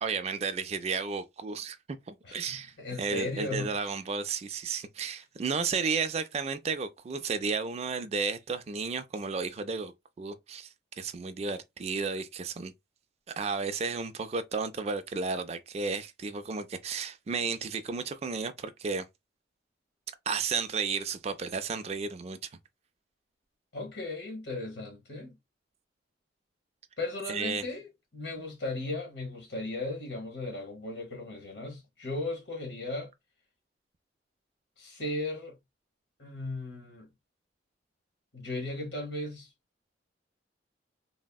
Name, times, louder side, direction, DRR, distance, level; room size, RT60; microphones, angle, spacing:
voice 1, 0.0-1.8 2.1-9.9 10.2-10.7 11.0-12.7 13.4-19.0 20.3-22.4 27.3-27.6, right 5 dB, 35° right, 0.3 m, -33 dB
voice 2, 2.2-3.9 23.7-25.4 27.0-33.1 34.8-35.6 36.2-37.1 38.3-39.5, left 2 dB, 75° left, 1.2 m, -36 dB
3.4 x 2.1 x 2.2 m
head